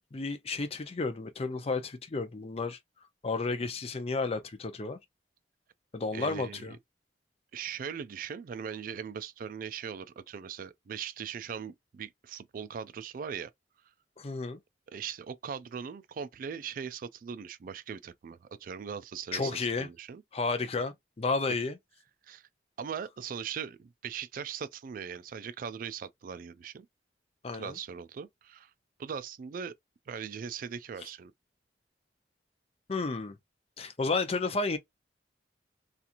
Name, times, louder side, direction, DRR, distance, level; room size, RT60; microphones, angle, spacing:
voice 1, 0.1-2.8 3.2-5.0 5.9-6.7 14.2-14.6 19.3-19.9 20.3-21.8 27.4-27.8 32.9-33.4 33.8-34.8, left 3 dB, 35° left, 0.5 m, -32 dB
voice 2, 6.1-6.8 7.5-13.5 14.9-19.5 19.8-20.2 22.2-22.5 22.8-26.9 27.5-28.7 29.0-29.7 30.1-31.3, right 7 dB, 50° right, 0.3 m, -40 dB
2.8 x 2.4 x 2.4 m
head